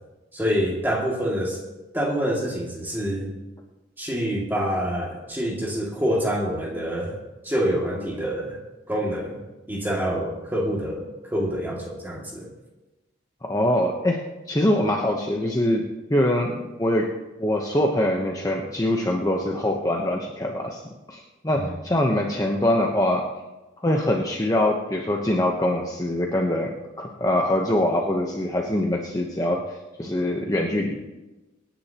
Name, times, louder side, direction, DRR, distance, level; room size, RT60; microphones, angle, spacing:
voice 1, 0.3-1.6 1.9-3.3 4.0-7.2 7.4-8.6 8.9-9.4 9.7-12.5 21.5-21.7, equal, 10° right, -2 dB, 2.2 m, -26 dB
voice 2, 13.4-14.2 14.5-15.8 16.1-16.5 16.8-17.1 17.4-20.8 21.1-23.2 23.8-26.7 27.0-29.6 30.0-31.0, left 1 dB, 20° left, 0 dB, 0.9 m, -23 dB
25.0 x 10.0 x 2.9 m, 1.1 s
head